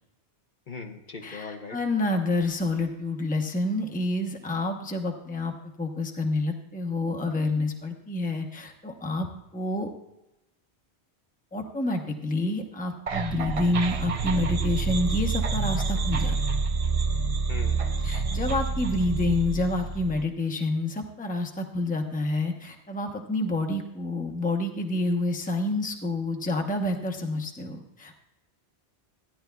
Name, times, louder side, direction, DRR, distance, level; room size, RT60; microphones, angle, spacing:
voice 1, 0.7-1.8 17.5-18.2, left 4 dB, 50° left, 2 dB, 1.0 m, -40 dB
voice 2, 1.2-9.3 9.5-9.9 11.5-16.3 18.0-28.2, left 2 dB, 10° left, 3 dB, 0.8 m, -28 dB
sound 1, 13.1-20.2, right 4 dB, 40° right, 0.5 m, -27 dB
16.0 x 10.5 x 2.3 m, 0.94 s
omnidirectional pair, 1.1 m